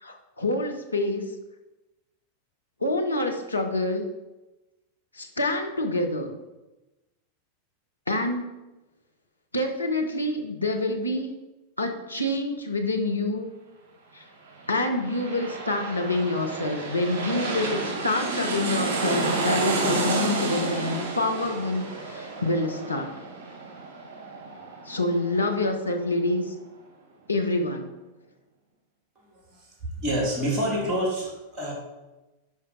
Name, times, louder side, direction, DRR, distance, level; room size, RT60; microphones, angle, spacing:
voice 1, 0.0-1.3 2.8-4.0 5.1-6.3 8.1-8.6 9.5-11.3 11.8-13.5 14.1-14.2 14.7-23.2 24.9-26.5 27.3-27.9, left 2 dB, 85° left, 3 dB, 1.1 m, -27 dB
sound 1, 14.7-26.0 26.4-26.5, right 3 dB, 50° right, 1.9 m, -30 dB
voice 2, 29.2-31.7, equal, 30° right, -2 dB, 3.1 m, -28 dB
10.5 x 4.9 x 4.5 m, 1.1 s
figure-of-eight pair, 90°, 0 cm